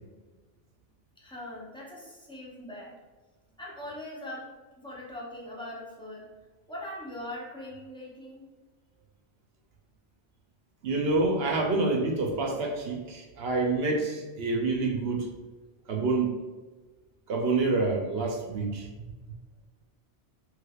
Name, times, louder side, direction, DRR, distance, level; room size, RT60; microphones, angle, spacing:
voice 1, 1.2-3.0 3.6-6.3 6.7-8.5, left 1 dB, 5° left, -5 dB, 0.4 m, -41 dB
voice 2, 10.8-15.3 15.9-16.3 17.3-18.9, right 3 dB, 65° right, 1 dB, 0.8 m, -27 dB
3.2 x 3.1 x 2.3 m, 1.3 s
omnidirectional pair, 1.2 m